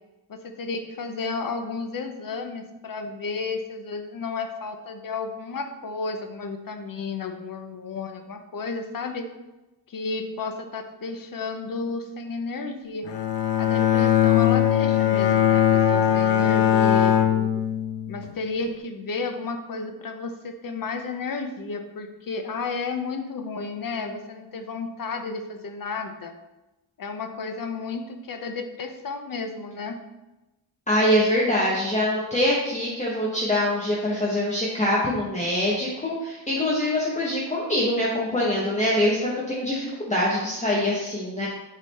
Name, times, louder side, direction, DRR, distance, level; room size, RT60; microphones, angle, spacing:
voice 1, 0.3-9.3 9.9-13.1 13.6-17.6 18.1-26.3 27.0-30.0, left 4 dB, 55° left, 6 dB, 0.8 m, -32 dB
Bowed string instrument, 13.0-18.3, left 10 dB, 80° left, 0.9 m, -20 dB
voice 2, 30.9-41.5, left 1 dB, 15° left, -5 dB, 1.1 m, -24 dB
8.2 x 4.1 x 4.2 m, 1.0 s
wide cardioid pair, 150°, 41 cm